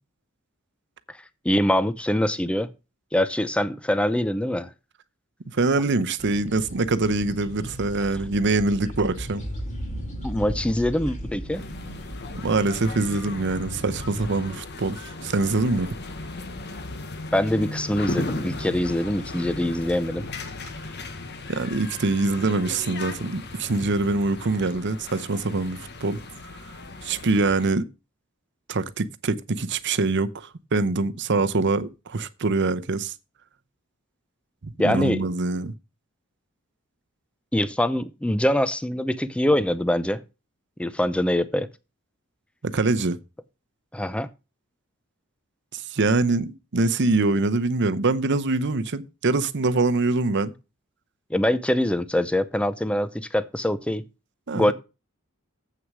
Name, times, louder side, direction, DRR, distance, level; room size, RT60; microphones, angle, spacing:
voice 1, 1.4-2.7 3.1-4.7 10.2-11.6 17.3-20.3 34.8-35.2 37.5-40.2 40.8-41.7 43.9-44.3 51.3-54.0 54.5-54.7, left 1 dB, 5° left, 0.5 m, -24 dB
voice 2, 5.5-9.4 12.4-15.9 21.5-26.2 27.0-27.8 28.7-33.1 34.6-35.7 42.6-43.2 45.7-50.5 54.5-54.7, right 3 dB, 55° right, 0.8 m, -24 dB
sound 1, 6.2-14.4, equal, 35° left, 2.6 m, -36 dB
sound 2, 11.5-27.7, left 2 dB, 55° left, 1.2 m, -36 dB
7.9 x 6.4 x 6.0 m
head